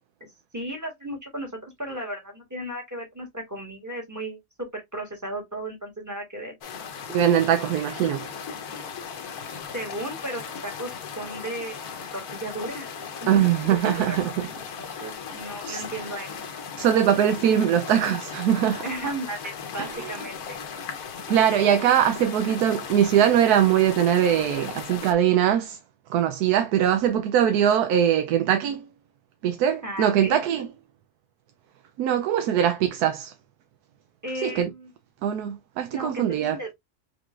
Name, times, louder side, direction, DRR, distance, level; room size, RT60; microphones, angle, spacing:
voice 1, 0.5-6.5 9.7-13.4 13.7-14.5 14.8-16.3 18.8-20.6 29.8-30.6 34.2-34.9 35.9-36.7, right 1 dB, 10° right, 1.9 m, -35 dB
sound 1, 6.6-25.1, left 6 dB, 80° left, 1.4 m, -37 dB
voice 2, 7.1-8.3 13.3-14.3 15.6-15.9 16.8-18.8 19.8-19.9 21.3-25.8 26.1-28.8 29.4-30.7 32.0-33.3 34.4-34.7 35.2-36.6, right 10 dB, 80° right, 1.1 m, -21 dB
5.0 x 3.8 x 2.4 m
omnidirectional pair, 1.6 m